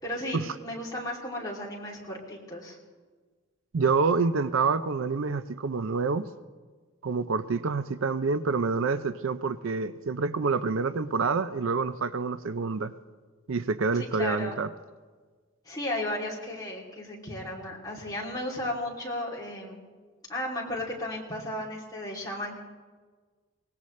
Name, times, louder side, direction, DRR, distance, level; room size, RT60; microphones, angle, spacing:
voice 1, 0.0-2.8 13.9-14.6 15.6-19.8 20.3-22.6, left 1 dB, 15° left, -4 dB, 2.8 m, -34 dB
voice 2, 3.7-6.3 7.0-12.9 13.5-14.7, right 4 dB, 65° right, 13 dB, 0.5 m, -27 dB
24.0 x 19.0 x 3.2 m, 1.4 s
head